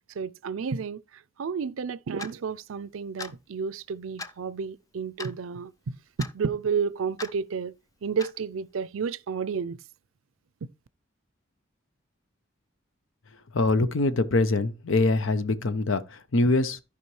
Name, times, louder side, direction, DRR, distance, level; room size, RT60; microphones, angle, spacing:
voice 1, 0.1-7.7 8.0-9.8 10.6-10.7, right 6 dB, 85° right, 0.5 m, -31 dB
Clock, 2.2-2.3 3.2-3.4 4.2-4.4 5.2-5.4 6.2-6.3 7.2-7.3 8.2-8.4, left 3 dB, 15° left, 0.4 m, -38 dB
voice 2, 13.5-16.8, left 2 dB, 80° left, 0.7 m, -24 dB
14.0 x 4.9 x 3.2 m
head